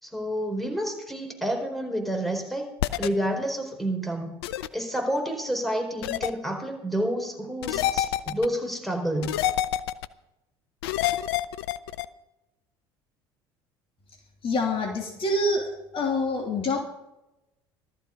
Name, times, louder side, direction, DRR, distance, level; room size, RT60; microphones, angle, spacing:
voice 1, 0.0-2.7 3.0-4.3 4.7-9.3, right 1 dB, ahead, 3 dB, 4.4 m, -29 dB
sound 1, 2.8-3.1 4.4-4.7 6.0-6.3 7.6-8.5 9.2-10.1 10.8-12.1, left 13 dB, 80° left, 0.6 m, -27 dB
voice 2, 14.4-16.8, left 2 dB, 45° left, 2 dB, 3.0 m, -26 dB
16.0 x 13.5 x 5.2 m, 0.91 s
hypercardioid pair, 70°, 13 cm